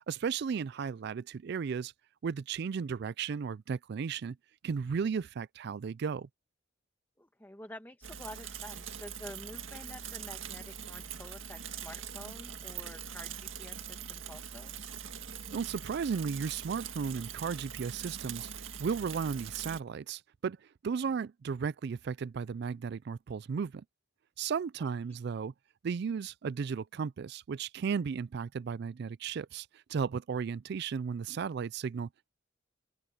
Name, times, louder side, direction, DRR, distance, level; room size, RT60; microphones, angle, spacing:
voice 1, 0.0-1.9 2.2-4.4 4.6-6.3 15.5-20.6 20.8-23.8 24.4-25.5 25.8-32.3, right 6 dB, 55° right, 0.4 m, -35 dB
voice 2, 7.2-14.7 24.8-24.9, left 1 dB, 10° left, 1.7 m, -49 dB
Bicycle / Mechanisms, 8.0-19.8, right 8 dB, 85° right, 1.8 m, -43 dB
open air
head